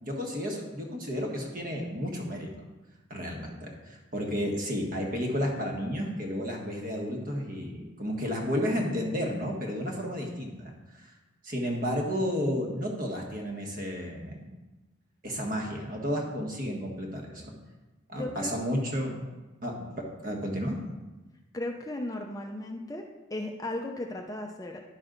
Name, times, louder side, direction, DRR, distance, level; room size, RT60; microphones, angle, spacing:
voice 1, 0.0-2.5 3.1-11.1 11.4-14.4 15.2-17.5 18.1-19.2 19.6-19.9 20.2-20.8, equal, 40° right, 1 dB, 1.4 m, -32 dB
voice 2, 18.1-18.6 21.5-24.8, left 1 dB, 15° left, 2 dB, 0.5 m, -36 dB
11.0 x 6.1 x 3.9 m, 1.1 s
head